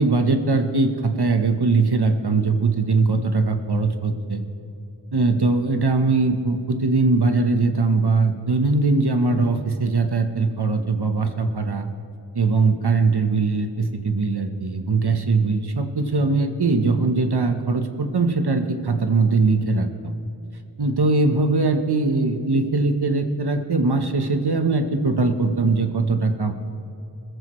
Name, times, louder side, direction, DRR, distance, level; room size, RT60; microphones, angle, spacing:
voice 1, 0.0-4.4 5.1-11.9 12.3-20.1 20.8-26.5, right 3 dB, 60° right, 7 dB, 1.1 m, -21 dB
23.0 x 14.5 x 3.1 m, 2.7 s
wide cardioid pair, 60°, 45 cm